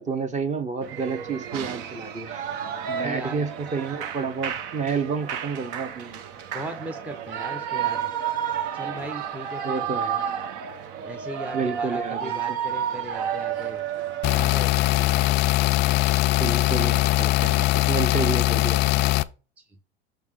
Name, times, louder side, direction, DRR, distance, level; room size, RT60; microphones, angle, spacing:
voice 1, 0.0-2.4 2.9-6.2 9.6-10.2 11.5-12.6 16.4-19.1, right 5 dB, 20° right, 0.9 m, -30 dB
Shout / Cheering, 0.8-14.7, right 9 dB, 55° right, 0.8 m, -31 dB
voice 2, 2.9-3.4 6.5-8.1 8.7-9.9 11.0-13.8 14.3-15.3, equal, 5° right, 0.6 m, -38 dB
sound 1, 14.2-19.2, left 18 dB, 35° left, 0.4 m, -21 dB
6.5 x 3.5 x 4.8 m
hypercardioid pair, 90°, 32 cm